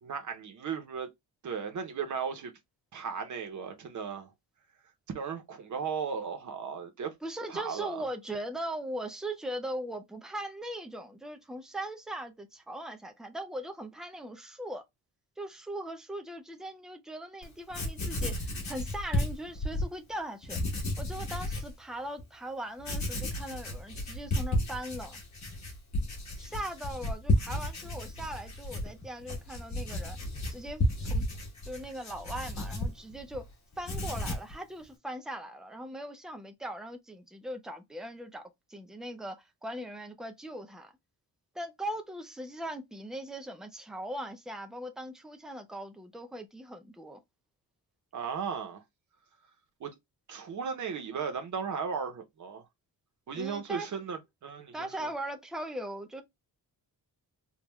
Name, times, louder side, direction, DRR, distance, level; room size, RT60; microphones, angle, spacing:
voice 1, 0.0-1.1 1.4-2.5 2.9-4.3 5.1-7.1 7.5-8.0 48.1-48.8 49.8-49.9 50.3-52.7 53.3-55.1, right 6 dB, 50° right, 0.9 m, -36 dB
voice 2, 7.2-14.8 15.4-20.6 21.0-25.2 26.4-30.2 30.5-31.3 31.7-33.5 33.8-38.4 38.7-40.9 41.5-47.2 53.4-53.9 54.7-56.2, right 1 dB, ahead, 0.3 m, -39 dB
Writing, 17.4-17.5 17.7-19.9 20.4-21.7 22.2-22.3 22.8-33.4 33.7-34.5, left 1 dB, 45° left, 1.6 m, -33 dB
3.5 x 2.4 x 3.0 m
wide cardioid pair, 175°, 38 cm